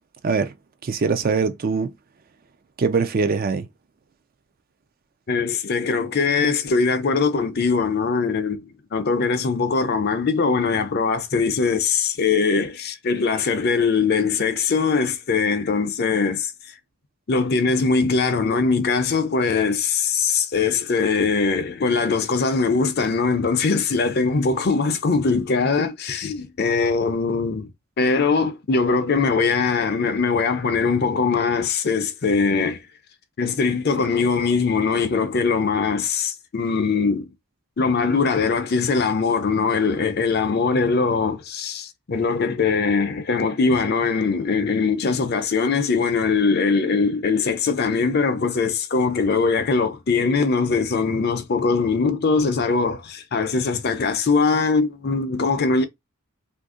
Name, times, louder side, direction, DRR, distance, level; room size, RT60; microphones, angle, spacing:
voice 1, 0.8-1.9 2.8-3.7, right 4 dB, 40° right, 0.3 m, -22 dB
voice 2, 5.3-16.5 17.3-27.7 28.0-32.8 33.4-37.3 37.8-55.8, left 4 dB, 45° left, 0.5 m, -21 dB
2.7 x 2.6 x 3.6 m
head